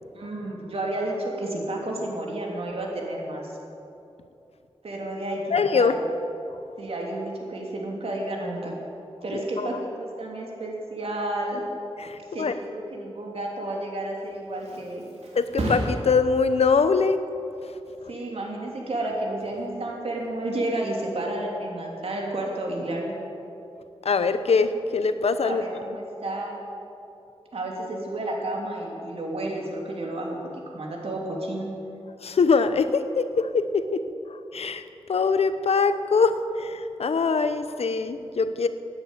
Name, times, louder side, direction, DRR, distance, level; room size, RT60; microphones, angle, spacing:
voice 1, 0.1-3.5 4.8-6.0 6.8-8.7 9.2-11.6 12.3-15.1 18.1-23.1 25.4-26.6 27.5-30.4 30.7-31.7, right 1 dB, 65° right, -1 dB, 3.2 m, -31 dB
voice 2, 5.5-5.9 9.3-9.8 12.0-12.5 15.4-17.2 24.0-25.6 32.2-34.0 34.3-34.8 35.1-38.7, left 5 dB, 70° left, 11 dB, 0.8 m, -23 dB
Thump thud, 14.1-21.4 21.9-22.3, right 1 dB, 85° right, 3.1 m, -37 dB
16.5 x 9.7 x 8.1 m, 2.8 s
wide cardioid pair, 105°, 11 cm